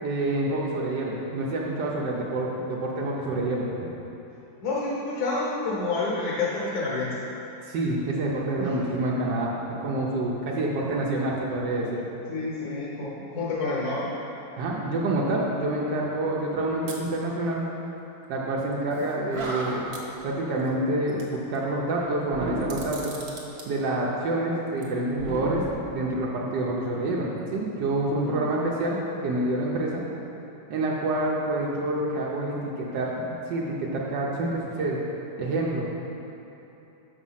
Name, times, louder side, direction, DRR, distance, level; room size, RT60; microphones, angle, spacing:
voice 1, 0.0-3.6 7.6-9.5 9.8-12.0 14.6-17.6 18.3-19.8 20.2-23.2 23.7-25.6 25.9-30.0 30.7-33.1 33.5-35.0 35.4-36.1, right 2 dB, 80° right, -4 dB, 1.4 m, -27 dB
voice 2, 4.6-7.2 8.6-8.7 12.3-14.2 28.2-28.4, left 3 dB, 65° left, -5 dB, 1.4 m, -29 dB
sound 1, 16.9-17.1 18.2-18.3 18.7-18.8 19.9-20.7 21.1-21.6 22.6-23.7 24.6-24.8, right 4 dB, 65° right, 1.5 m, -42 dB
Animal, 19.0-19.1 19.3-20.1 22.3-23.1 25.2-26.5, right 2 dB, 45° right, 0.9 m, -35 dB
6.1 x 5.8 x 5.6 m, 3.0 s
omnidirectional pair, 1.9 m